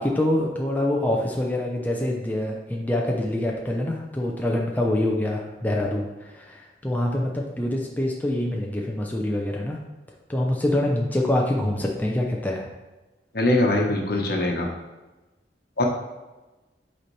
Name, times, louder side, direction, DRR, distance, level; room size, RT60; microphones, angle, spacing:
voice 1, 0.0-9.8 10.3-12.7, left 1 dB, 10° left, -1 dB, 0.6 m, -25 dB
voice 2, 13.3-14.7 15.8-15.9, left 2 dB, 60° left, 0 dB, 1.1 m, -22 dB
7.9 x 4.4 x 3.2 m, 1.1 s
head